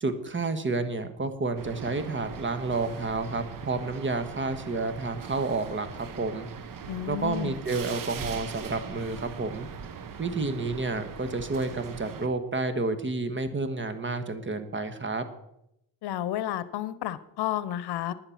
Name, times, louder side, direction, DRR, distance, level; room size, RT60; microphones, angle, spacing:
voice 1, 0.0-6.5 7.1-9.7 10.2-15.2, right 3 dB, 30° right, 10 dB, 1.3 m, -30 dB
sound 1, 1.6-12.3, right 6 dB, 55° right, 1.1 m, -41 dB
voice 2, 6.9-7.5 16.0-18.1, left 12 dB, 75° left, 16 dB, 0.8 m, -31 dB
10.5 x 9.8 x 5.8 m, 0.82 s
cardioid pair, 95°, 40 cm